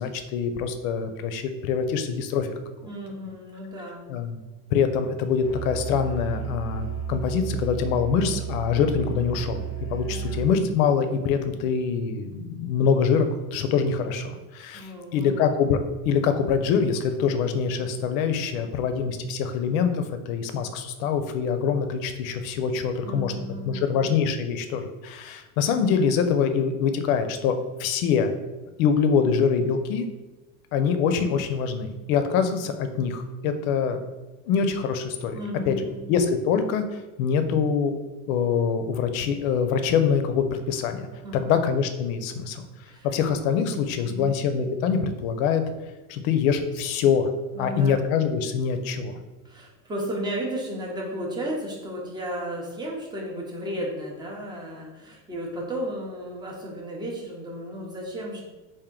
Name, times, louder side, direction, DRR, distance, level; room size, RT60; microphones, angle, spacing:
voice 1, 0.0-2.5 4.1-4.4 4.7-9.6 9.9-23.3 23.6-28.3 28.8-30.1 30.7-34.0 34.5-35.4 35.7-35.8 36.1-36.8 37.2-37.9 38.3-41.1 41.3-42.6 43.0-45.6 46.1-47.3 47.6-49.2, left 6 dB, 65° left, 8 dB, 0.6 m, -24 dB
voice 2, 2.8-4.3 10.1-10.4 14.7-15.6 23.0-24.2 35.3-36.2 41.2-41.6 42.9-43.1 44.0-44.4 47.5-48.1 49.4-58.4, equal, 10° right, -2 dB, 0.5 m, -34 dB
Musical instrument, 5.4-10.6, right 8 dB, 10° left, 1.0 m, -33 dB
3.4 x 2.6 x 3.7 m, 1.2 s
supercardioid pair, 135°, 44 cm